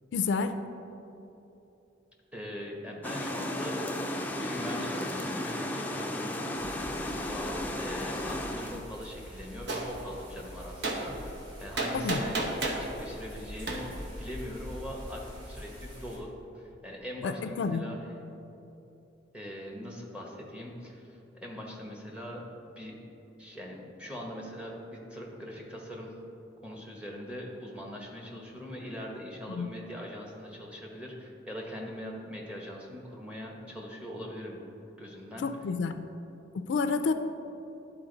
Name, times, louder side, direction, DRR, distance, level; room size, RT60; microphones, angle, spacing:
voice 1, 0.1-0.5 11.9-12.5 17.2-17.9 29.5-29.7 35.4-36.0 36.5-37.1, left 4 dB, 80° left, 9 dB, 0.4 m, -30 dB
voice 2, 2.3-3.9 4.4-6.4 7.0-18.0 19.3-22.4 22.8-23.0 23.4-26.1 26.6-34.6 35.0-35.5, equal, 5° right, -2 dB, 1.0 m, -41 dB
sound 1, 3.0-8.8, left 1 dB, 10° left, 0.4 m, -34 dB
sound 2, 6.6-16.2, equal, 25° right, 1.8 m, -45 dB
Gunshot gunfire, 9.7-9.9 10.8-11.0 11.8-12.9 13.7-13.8, right 3 dB, 65° right, 0.9 m, -30 dB
11.0 x 4.4 x 3.9 m, 2.9 s
head